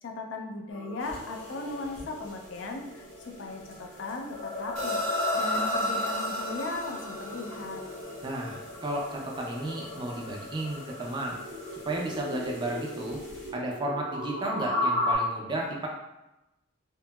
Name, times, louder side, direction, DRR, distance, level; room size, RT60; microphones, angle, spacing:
voice 1, 0.0-7.8, left 2 dB, 65° left, 3 dB, 0.4 m, -37 dB
sound 1, 0.7-15.2, left 1 dB, 80° left, 0.8 m, -34 dB
sound 2, 1.0-13.5, equal, 35° left, 0.8 m, -53 dB
sound 3, 4.8-9.1, right 2 dB, 80° right, 0.6 m, -42 dB
voice 2, 8.2-11.4 11.8-13.2 13.5-15.9, right 1 dB, 25° right, -2 dB, 0.3 m, -33 dB
2.8 x 2.6 x 2.2 m, 0.95 s
head